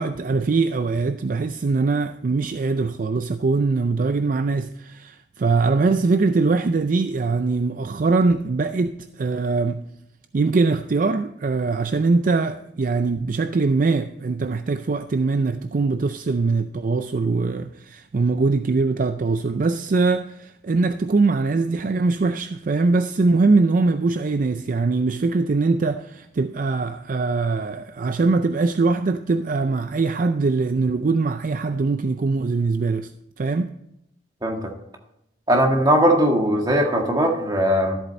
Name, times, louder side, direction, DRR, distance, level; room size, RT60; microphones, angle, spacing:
voice 1, 0.0-9.8 10.3-33.1 33.4-33.7, right 3 dB, 45° right, 0.4 m, -22 dB
voice 2, 34.4-34.7 35.5-38.0, equal, 20° right, 1.8 m, -19 dB
13.5 x 8.1 x 4.2 m
head